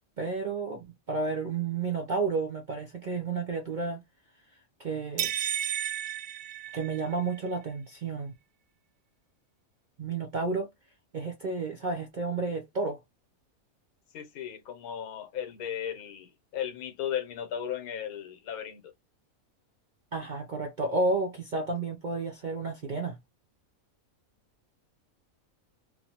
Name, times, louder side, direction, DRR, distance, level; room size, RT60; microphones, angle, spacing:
voice 1, 0.2-4.0 4.8-5.3 6.7-8.3 10.0-10.7 11.1-13.0 20.1-23.2, right 3 dB, 55° right, 0.5 m, -31 dB
sound 1, 5.2-7.3, right 10 dB, 75° right, 1.0 m, -32 dB
voice 2, 14.1-18.9, left 9 dB, 85° left, 1.2 m, -36 dB
3.1 x 2.0 x 2.8 m
omnidirectional pair, 1.5 m